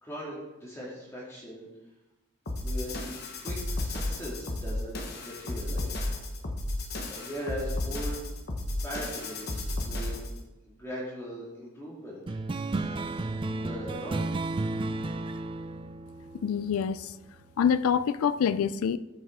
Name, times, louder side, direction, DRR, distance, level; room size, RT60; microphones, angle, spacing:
voice 1, 0.0-1.7 2.6-6.1 7.1-8.2 8.8-10.2 10.7-12.4 12.9-13.1 13.6-14.2, equal, 10° left, -6 dB, 2.0 m, -40 dB
sound 1, 2.5-10.4, left 1 dB, 50° left, 1.0 m, -33 dB
sound 2, 12.3-17.2, right 2 dB, 25° right, 0.3 m, -33 dB
voice 2, 16.4-17.1 17.6-19.0, left 7 dB, 85° left, 15 dB, 0.3 m, -26 dB
13.5 x 5.5 x 3.6 m, 1.0 s
head